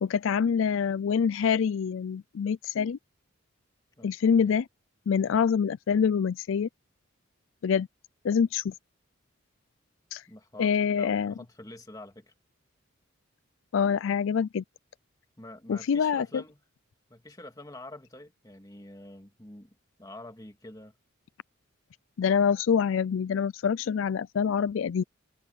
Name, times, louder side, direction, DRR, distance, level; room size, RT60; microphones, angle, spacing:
voice 1, 0.0-3.0 4.0-4.7 5.1-6.7 7.6-7.9 8.2-8.7 10.1-10.2 10.6-11.3 13.7-14.6 15.7-16.4 22.2-25.0, left 6 dB, 70° left, 0.4 m, -25 dB
voice 2, 4.0-4.5 10.3-12.3 15.4-16.6 17.1-21.0, left 1 dB, 15° left, 2.1 m, -47 dB
head